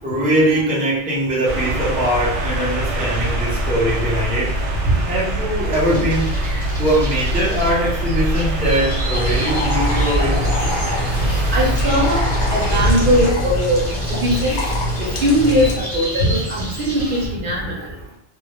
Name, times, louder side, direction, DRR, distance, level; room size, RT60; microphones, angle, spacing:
voice 1, 0.0-4.6 5.1-6.3 6.8-10.5 11.1-11.5 17.0-17.1, right 1 dB, 15° right, -7 dB, 0.3 m, -21 dB
sound 1, 1.5-13.3, right 1 dB, 85° right, 1.0 m, -23 dB
sound 2, 5.7-17.3, equal, 10° left, 0.8 m, -33 dB
sound 3, 9.1-15.7, equal, 50° left, 0.6 m, -24 dB
voice 2, 11.5-12.2 12.5-14.6 15.2-17.9, equal, 55° right, -4 dB, 0.8 m, -19 dB
2.1 x 2.1 x 2.8 m, 0.80 s
omnidirectional pair, 1.2 m